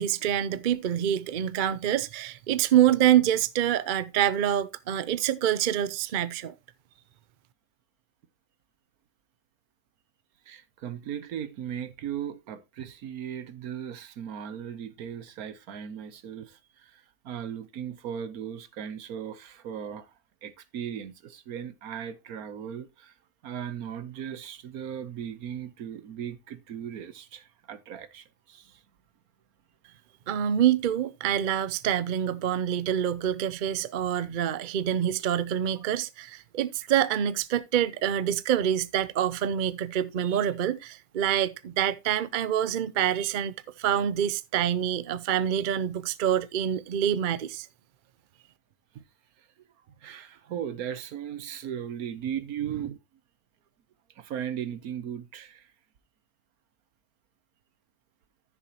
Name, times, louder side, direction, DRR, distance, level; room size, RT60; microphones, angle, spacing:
voice 1, 0.0-6.5 30.3-47.7, right 10 dB, 55° right, 0.5 m, -26 dB
voice 2, 10.5-20.1 20.4-23.1 23.4-28.8 35.8-35.9 48.9-49.0 49.4-49.5 50.0-53.0 54.2-55.7, right 9 dB, 75° right, 1.4 m, -37 dB
14.5 x 6.7 x 2.9 m
omnidirectional pair, 1.6 m